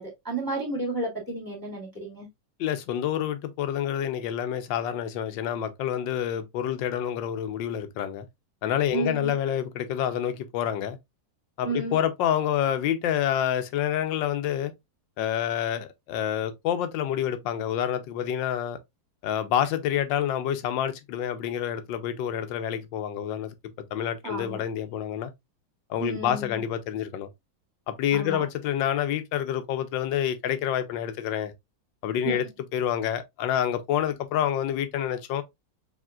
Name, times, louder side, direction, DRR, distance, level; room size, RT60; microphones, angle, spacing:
voice 1, 0.0-2.3 8.9-9.3 11.6-12.0 24.2-24.6 26.0-26.6 28.1-28.5 32.2-32.4, right 2 dB, 10° right, 2.5 m, -32 dB
voice 2, 2.6-8.3 8.6-11.0 11.6-14.7 15.2-18.8 19.2-23.5 23.9-25.3 25.9-27.3 27.9-31.5 32.0-32.4 32.7-35.4, left 10 dB, 90° left, 1.4 m, -28 dB
4.9 x 3.6 x 2.3 m
omnidirectional pair, 2.0 m